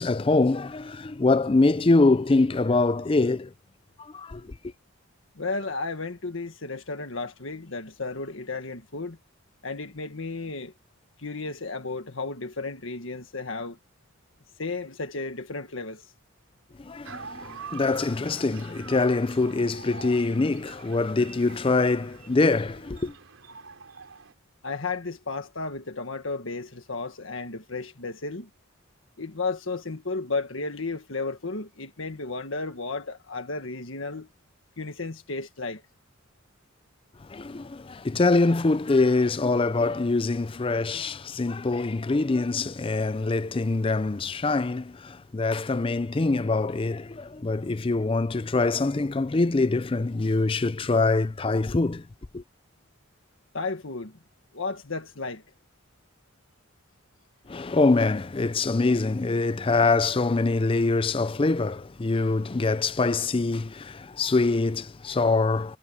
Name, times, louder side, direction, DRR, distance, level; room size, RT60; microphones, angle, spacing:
voice 1, 0.0-3.5 4.1-4.5 16.8-23.1 37.3-52.0 52.3-52.4 57.5-65.8, left 3 dB, 25° left, 0.5 m, -24 dB
voice 2, 5.4-9.2 9.6-10.7 11.2-13.8 14.6-16.1 24.6-28.5 29.2-34.3 34.8-35.8 53.5-54.1 54.5-55.4, left 3 dB, 80° left, 1.6 m, -33 dB
sound 1, 17.0-24.3, right 5 dB, 85° right, 3.5 m, -45 dB
head